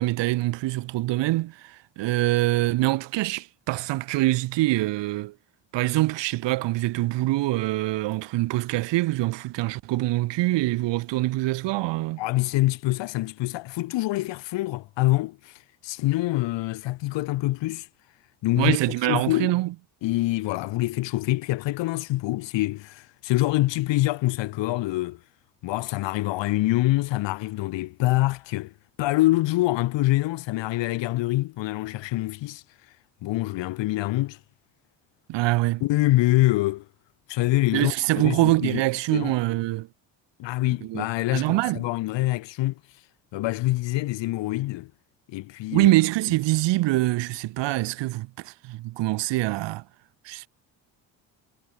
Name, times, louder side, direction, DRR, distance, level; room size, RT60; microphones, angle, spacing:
voice 1, 0.0-5.3 5.7-12.2 18.6-19.7 35.3-35.8 37.7-39.9 40.8-41.1 41.3-41.8 45.7-49.8 50.2-50.5, right 18 dB, 70° right, 1.0 m, -24 dB
voice 2, 12.2-15.5 15.8-17.9 18.4-18.8 19.1-19.5 20.0-25.2 25.6-28.7 29.0-32.6 33.2-34.4 35.8-36.8 37.3-37.9 38.2-38.8 39.1-39.3 40.4-42.8 43.3-44.9 45.3-45.9, left 18 dB, 75° left, 1.5 m, -25 dB
supercardioid pair, 75°, 44 cm